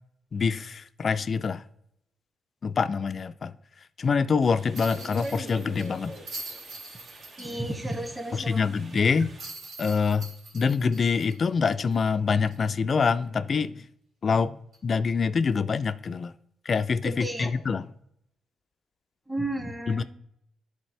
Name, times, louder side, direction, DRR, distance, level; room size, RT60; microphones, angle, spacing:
voice 1, 0.3-1.6 2.6-3.5 4.0-6.2 8.3-9.3 9.8-10.3 10.5-13.8 14.2-16.3 16.7-17.9 19.9-20.0, left 5 dB, 45° left, 0.4 m, -25 dB
sound 1, 4.4-9.4, right 1 dB, 55° right, 1.7 m, -44 dB
sound 2, 4.7-8.0 8.3-8.4 9.4-12.1 12.5-12.6 14.7-14.9, right 2 dB, 70° right, 3.1 m, -43 dB
voice 2, 7.4-8.6 17.0-17.5 19.3-20.0, right 1 dB, 15° right, 1.7 m, -32 dB
11.0 x 4.0 x 3.3 m
cardioid pair, 80°, 0 cm